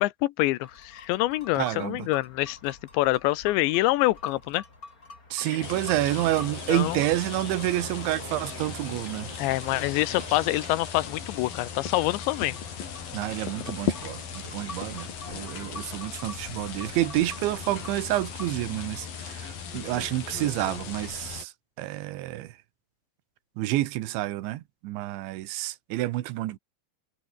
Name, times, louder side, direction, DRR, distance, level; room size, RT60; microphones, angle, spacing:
voice 1, 0.0-4.6 5.4-5.6 6.7-7.0 9.4-12.6, left 18 dB, 80° left, 3.0 m, -26 dB
sound 1, 0.6-18.9, left 3 dB, 20° left, 4.3 m, -48 dB
voice 2, 1.6-2.1 5.3-9.3 13.1-21.5 21.8-22.5 23.6-26.6, right 16 dB, 80° right, 3.5 m, -29 dB
sound 2, 5.4-10.7, right 3 dB, 30° right, 8.7 m, -44 dB
sound 3, 5.6-21.4, left 7 dB, 55° left, 5.1 m, -37 dB
omnidirectional pair, 5.2 m